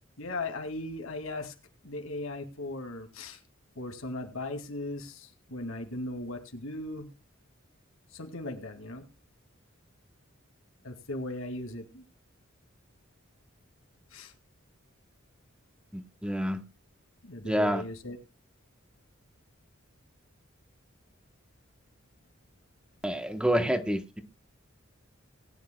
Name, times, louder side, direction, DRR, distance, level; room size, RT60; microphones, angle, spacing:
voice 1, 0.2-1.5 1.8-3.4 3.8-7.1 8.1-9.0 10.8-12.0 14.1-14.3 17.2-18.2, left 2 dB, 85° left, 5 dB, 2.4 m, -38 dB
voice 2, 15.9-16.6 17.4-17.8 23.0-24.2, equal, 5° right, 8 dB, 0.9 m, -28 dB
20.0 x 10.0 x 2.2 m, 0.26 s
head